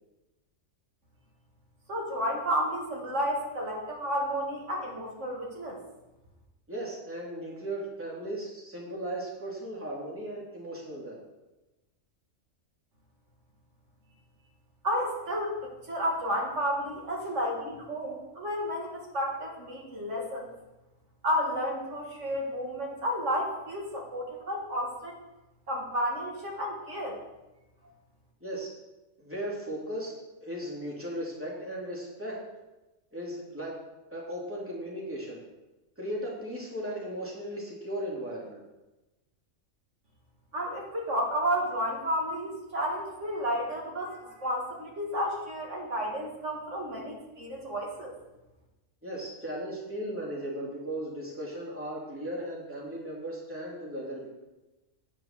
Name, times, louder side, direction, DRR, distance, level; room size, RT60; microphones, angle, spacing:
voice 1, 1.9-5.8 14.8-20.5 21.2-25.2 25.7-27.2 40.5-48.1, equal, 70° right, -1 dB, 2.7 m, -31 dB
voice 2, 6.7-11.2 28.4-28.7 29.2-32.4 33.1-33.8 34.1-35.4 36.0-38.6 49.0-54.3, right 1 dB, 10° right, -5 dB, 3.0 m, -36 dB
9.3 x 7.6 x 6.7 m, 1.0 s
omnidirectional pair, 1.3 m